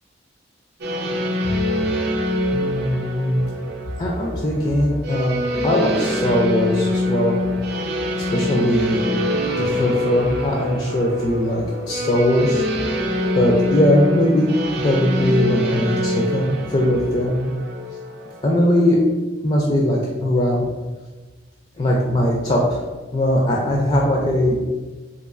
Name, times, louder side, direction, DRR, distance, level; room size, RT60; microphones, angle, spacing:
sound 1, 0.8-18.9, left 1 dB, 55° right, 0.5 m, -24 dB
voice 1, 1.4-1.9 2.5-3.5 4.0-7.4 8.2-9.0 9.5-12.6 13.4-17.5 18.4-19.0 19.4-20.7 21.8-22.8 23.1-24.5, equal, 30° left, -2 dB, 0.3 m, -20 dB
4.0 x 2.5 x 2.4 m, 1.3 s
head